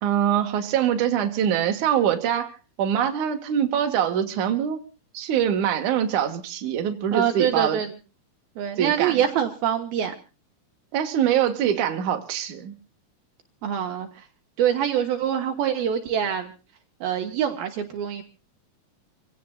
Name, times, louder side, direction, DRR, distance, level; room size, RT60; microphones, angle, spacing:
voice 1, 0.0-2.5 2.8-4.8 5.1-7.8 8.8-9.1 10.9-12.7, right 9 dB, 55° right, 5 dB, 3.1 m, -23 dB
voice 2, 7.1-7.9 8.6-10.1 13.6-14.3 14.6-16.5 17.0-18.2, right 9 dB, 70° right, 5 dB, 3.1 m, -25 dB
27.5 x 17.0 x 2.4 m, 0.34 s
omnidirectional pair, 4.5 m